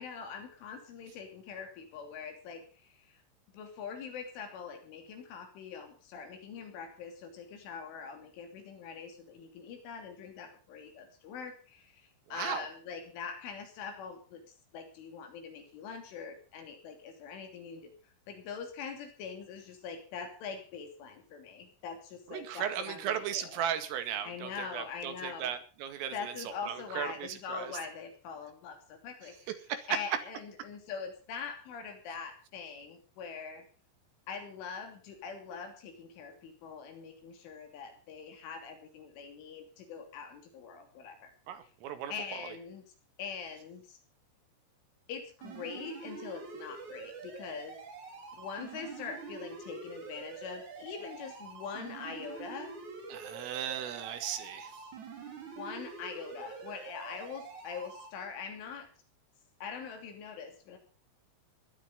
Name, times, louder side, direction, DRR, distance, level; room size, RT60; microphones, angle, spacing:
voice 1, 0.0-3.2 3.5-14.4 14.7-23.6 24.2-25.5 26.1-29.5 29.9-33.6 34.3-41.3 42.1-42.9 43.2-44.0 45.1-47.8 48.4-52.8 55.6-58.9 59.6-60.8, left 6 dB, 70° left, 6 dB, 5.4 m, -43 dB
voice 2, 12.3-12.7 22.3-27.7 29.7-29.9 41.5-42.4 53.1-54.8, right 9 dB, 80° right, 9 dB, 4.6 m, -37 dB
sound 1, 45.4-58.1, right 5 dB, 40° right, 4.4 m, -46 dB
18.0 x 13.0 x 5.3 m, 0.37 s
omnidirectional pair, 5.8 m